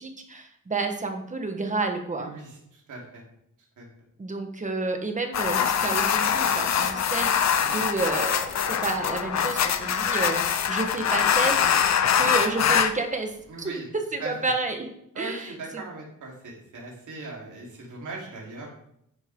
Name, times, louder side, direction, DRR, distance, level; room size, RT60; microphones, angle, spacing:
voice 1, 0.0-2.3 4.2-7.3 7.7-14.9 15.2-15.8, right 3 dB, 20° right, 5 dB, 1.3 m, -30 dB
voice 2, 2.2-3.2 3.8-3.9 7.6-7.8 13.5-13.9 14.2-14.5 15.1-18.7, right 3 dB, 65° right, -3 dB, 3.7 m, -39 dB
sound 1, 5.3-12.9, left 8 dB, 55° left, 0.8 m, -23 dB
9.9 x 9.6 x 3.7 m, 0.74 s
wide cardioid pair, 165°, 33 cm